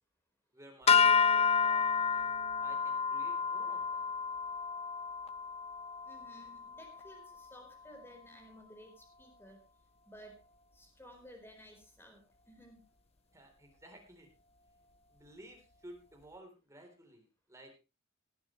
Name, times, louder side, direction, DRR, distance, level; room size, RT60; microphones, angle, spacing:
voice 1, 0.5-4.0 13.3-14.3 15.1-17.7, right 1 dB, 15° right, 3 dB, 3.7 m, -55 dB
sound 1, 0.9-7.2, left 6 dB, 30° left, 0.6 m, -30 dB
voice 2, 6.1-9.6 10.1-10.4 10.7-12.2 12.5-12.8, equal, 10° left, 3 dB, 4.4 m, -55 dB
18.5 x 10.5 x 3.2 m, 0.29 s
head